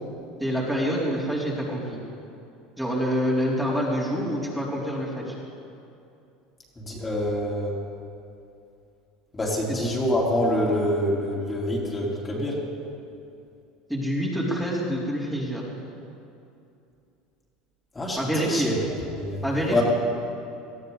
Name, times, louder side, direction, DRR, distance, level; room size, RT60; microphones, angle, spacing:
voice 1, 0.4-2.0 2.8-5.3 9.7-9.8 13.9-15.6 18.2-18.7 19.4-19.8, equal, 5° right, -6 dB, 3.6 m, -26 dB
voice 2, 6.8-7.8 9.3-12.6 17.9-18.8 19.1-19.4 19.7-19.8, left 1 dB, 20° left, -4 dB, 3.8 m, -26 dB
20.0 x 14.0 x 4.0 m, 2.6 s
hypercardioid pair, 90°, 0 cm